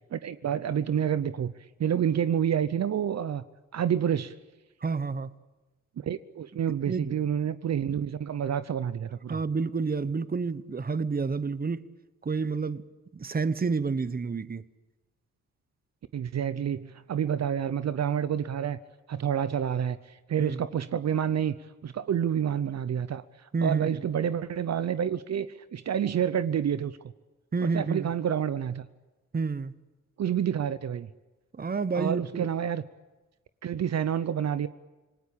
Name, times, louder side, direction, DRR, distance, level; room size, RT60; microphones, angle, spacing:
voice 1, 0.1-1.5 1.8-3.4 3.7-4.3 6.0-9.4 16.1-18.8 19.1-21.5 21.8-27.1 27.6-28.8 30.2-31.1 31.9-32.8 33.6-34.7, right 9 dB, 55° right, 0.8 m, -28 dB
voice 2, 4.8-5.3 6.9-7.1 7.9-8.0 9.3-11.8 12.2-12.8 13.1-14.6 20.4-20.6 23.5-24.0 27.5-28.1 29.3-29.7 31.6-32.4, right 4 dB, 30° right, 1.0 m, -29 dB
26.5 x 20.0 x 8.7 m
cardioid pair, 75°, 31 cm